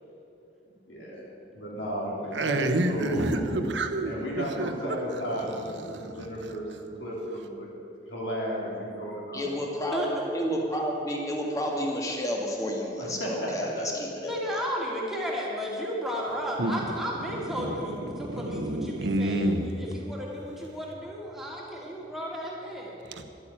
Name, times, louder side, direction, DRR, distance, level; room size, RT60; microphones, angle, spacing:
voice 1, 0.9-1.2 1.5-3.4 4.0-7.7 8.1-9.4 13.0-13.8, equal, 85° left, -4 dB, 3.7 m, -34 dB
voice 2, 2.3-4.7 5.4-6.5 16.6-16.9 17.3-19.6 23.1-23.2, right 1 dB, 80° right, 6 dB, 1.0 m, -29 dB
voice 3, 9.3-14.6, equal, 20° left, -1 dB, 1.8 m, -31 dB
voice 4, 14.2-23.0, equal, ahead, -4 dB, 2.2 m, -34 dB
11.5 x 8.6 x 8.8 m, 2.7 s
head